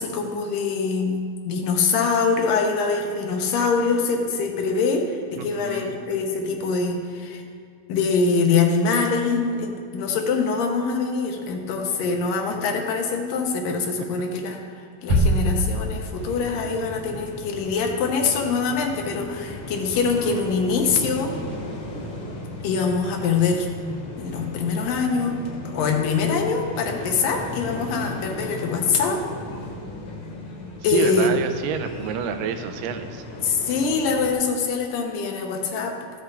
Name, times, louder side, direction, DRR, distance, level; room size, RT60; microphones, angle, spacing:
voice 1, 0.0-7.4 7.9-21.3 22.6-23.7 24.2-25.4 25.6-29.2 30.8-31.3 33.4-36.0, left 5 dB, 85° left, 2 dB, 2.6 m, -24 dB
voice 2, 5.4-5.9 20.3-20.4 30.9-33.2, right 7 dB, 85° right, 7 dB, 2.3 m, -29 dB
sound 1, 15.1-16.5, equal, 65° right, 1.2 m, -22 dB
sound 2, 16.1-34.3, left 2 dB, 50° left, 1.4 m, -36 dB
13.5 x 8.0 x 3.4 m, 2.3 s
omnidirectional pair, 3.8 m